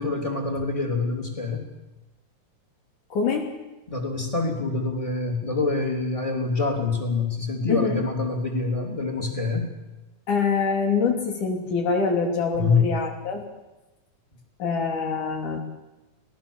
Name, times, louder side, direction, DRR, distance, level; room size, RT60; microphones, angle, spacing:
voice 1, 0.0-1.6 3.9-9.7 12.5-12.9, left 3 dB, 10° left, 2 dB, 2.9 m, -26 dB
voice 2, 3.1-3.5 7.7-8.0 10.3-13.5 14.6-15.6, left 5 dB, 65° left, 2 dB, 4.4 m, -25 dB
24.5 x 18.0 x 7.2 m, 1.1 s
omnidirectional pair, 3.9 m